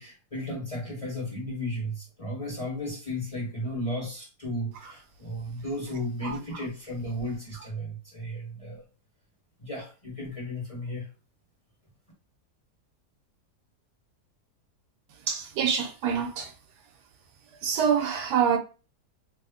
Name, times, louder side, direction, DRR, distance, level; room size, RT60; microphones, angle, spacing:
voice 1, 0.0-8.8 9.6-11.1, left 1 dB, 25° left, 1.0 m, -34 dB
voice 2, 15.1-16.5 17.6-18.6, right 7 dB, 85° right, 1.2 m, -26 dB
3.1 x 2.0 x 3.6 m
omnidirectional pair, 1.8 m